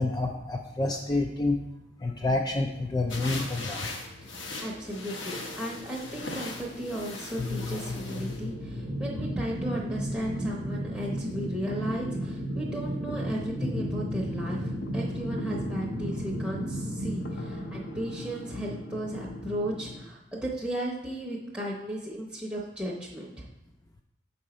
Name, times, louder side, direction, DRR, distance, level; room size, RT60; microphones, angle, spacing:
voice 1, 0.0-1.6 2.0-3.8, left 2 dB, 20° left, 2 dB, 0.3 m, -28 dB
sound 1, 3.1-8.4, left 2 dB, 85° left, 1.1 m, -39 dB
sound 2, 3.6-20.0, left 2 dB, 55° left, 0.6 m, -40 dB
voice 2, 4.3-23.5, right 1 dB, 5° right, -5 dB, 0.8 m, -35 dB
sound 3, 8.1-19.1, right 1 dB, 75° right, 0.6 m, -35 dB
6.3 x 4.2 x 4.9 m, 0.91 s
head